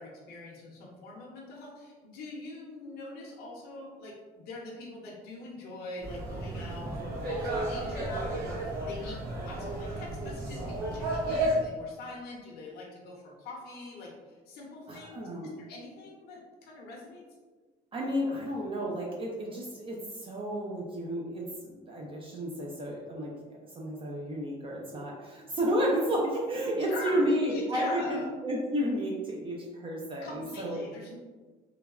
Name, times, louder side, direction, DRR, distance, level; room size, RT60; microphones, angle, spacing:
voice 1, 0.0-15.3 15.6-17.2 26.9-28.3 30.2-31.1, left 2 dB, 65° left, -4 dB, 0.7 m, -43 dB
sound 1, 6.0-11.6, right 1 dB, 65° right, 0.9 m, -33 dB
voice 2, 14.9-15.5 17.9-23.3 23.7-30.8, equal, 30° right, -2 dB, 0.5 m, -32 dB
3.2 x 2.2 x 2.3 m, 1.4 s
cardioid pair, 110°, 17 cm